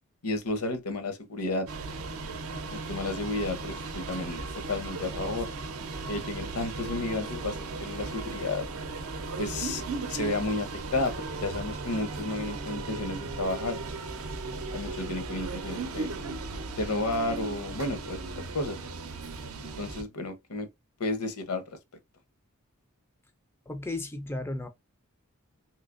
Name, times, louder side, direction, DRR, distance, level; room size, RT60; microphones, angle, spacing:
voice 1, 0.2-1.7 2.7-4.4 4.7-5.5 6.1-8.7 9.4-9.8 10.1-11.1 11.4-13.8 14.7-16.1 16.8-18.8 19.6-20.7 21.0-21.6, left 2 dB, 80° left, 0.7 m, -32 dB
sound 1, 1.7-20.0, right 3 dB, 70° right, 0.5 m, -36 dB
voice 2, 23.7-24.7, left 2 dB, 10° left, 0.3 m, -34 dB
3.2 x 2.8 x 2.4 m
head